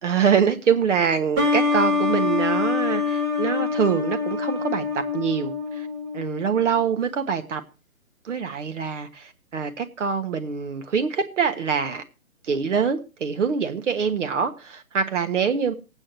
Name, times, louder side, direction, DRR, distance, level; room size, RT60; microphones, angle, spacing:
voice 1, 0.0-5.9 6.1-7.6 8.2-12.0 12.4-15.7, right 6 dB, 60° right, 1.4 m, -24 dB
sound 1, 1.4-6.8, left 4 dB, 20° right, 1.5 m, -25 dB
25.0 x 8.8 x 2.9 m
hypercardioid pair, 150°, 41 cm